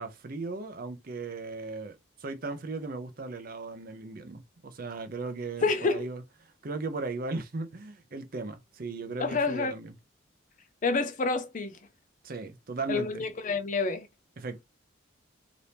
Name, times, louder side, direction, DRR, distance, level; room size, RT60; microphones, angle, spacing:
voice 1, 0.0-9.9 12.2-13.2 14.4-14.6, right 3 dB, 45° right, 0.6 m, -37 dB
voice 2, 5.6-6.1 9.2-9.7 10.8-11.8 12.9-14.1, left 3 dB, 40° left, 0.5 m, -28 dB
2.8 x 2.6 x 3.4 m
head